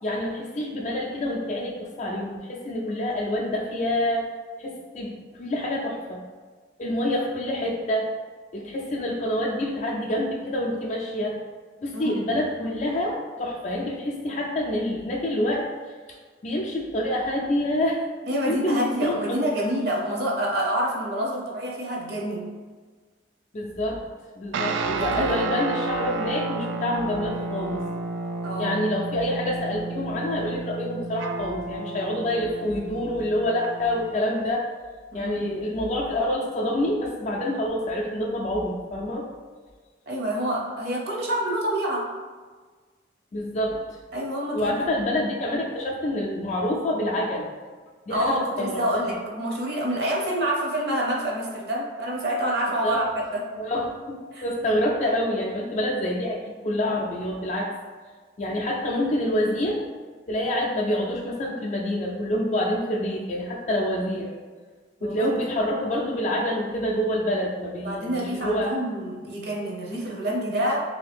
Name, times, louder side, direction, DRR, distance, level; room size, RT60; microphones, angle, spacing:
voice 1, 0.0-4.2 4.6-6.2 6.8-8.1 8.5-11.4 11.8-15.7 16.4-18.0 18.4-19.7 23.5-24.0 24.4-27.8 28.6-34.7 35.1-39.3 43.3-43.8 44.5-47.5 48.1-49.2 52.8-53.0 53.6-56.4 56.6-57.7 58.4-59.9 60.3-64.3 65.0-68.7, left 1 dB, 40° left, -1 dB, 0.3 m, -27 dB
voice 2, 18.3-22.5 24.9-25.4 28.4-28.8 35.1-35.5 40.1-42.1 44.1-44.8 48.1-53.0 53.3-53.4 54.3-54.4 65.0-65.3 67.8-70.8, right 1 dB, 60° right, -3 dB, 0.7 m, -27 dB
sound 1, 24.5-34.2, right 3 dB, 85° right, 0.3 m, -31 dB
3.2 x 2.7 x 3.3 m, 1.5 s
head